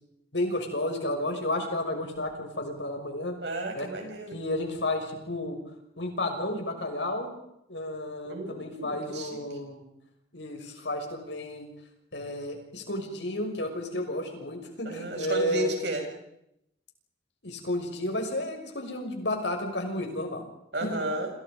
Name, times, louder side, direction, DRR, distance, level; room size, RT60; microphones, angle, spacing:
voice 1, 0.3-3.4 3.7-3.9 4.3-5.6 6.0-7.3 7.7-9.8 10.3-11.7 12.1-15.7 17.4-20.4, left 1 dB, 85° left, 4 dB, 6.3 m, -32 dB
voice 2, 3.4-4.4 8.2-9.4 14.8-16.0 20.7-21.3, right 2 dB, 75° right, 2 dB, 7.3 m, -33 dB
29.5 x 27.0 x 5.3 m, 0.79 s
head